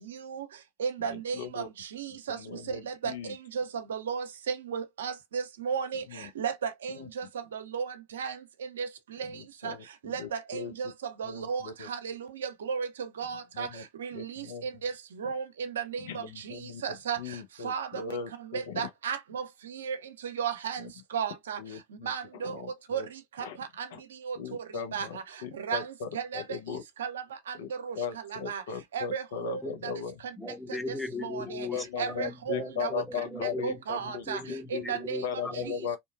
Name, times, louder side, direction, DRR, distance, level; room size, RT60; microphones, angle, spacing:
voice 1, 0.8-1.6 1.9-2.4 2.9-3.1 3.6-3.7 3.9-6.0 6.4-7.2 7.5-8.3 8.8-8.9 9.2-9.3 9.6-9.7 10.1-10.9 11.2-11.6 11.9-12.1 12.4-12.9 13.2-13.7 14.0-14.4 14.8-14.9 15.2-15.8 16.1-16.2 16.8-17.2 17.6-18.0 18.5-19.4 19.7-20.0 20.4-20.8 21.1-21.6 22.1-22.5 22.9-23.0 23.4-23.5 23.8-23.9 24.3-24.4 24.9-25.1 25.7-25.8 26.1-26.4 27.0-27.2 27.9-28.0 28.5-28.6 28.9-29.6 31.2-31.7 32.0-32.9 33.6-34.4 34.7-35.2, right 7 dB, 85° right, 0.5 m, -33 dB
voice 2, 1.3-1.7 2.3-3.3 6.1-6.3 6.9-7.0 9.2-10.7 11.2-11.9 13.5-13.8 14.1-14.7 16.0-16.8 17.2-18.9 20.8-20.9 21.6-22.1 22.4-23.1 23.4-23.6 23.9-24.0 24.4-26.8 27.6-27.7 28.0-30.2 31.7-34.3 34.7-34.8 35.2-36.0, left 7 dB, 80° left, 0.6 m, -38 dB
voice 3, 30.4-33.8 34.3-35.9, left 2 dB, 10° left, 0.5 m, -38 dB
2.7 x 2.2 x 2.3 m
hypercardioid pair, 85°, 0 cm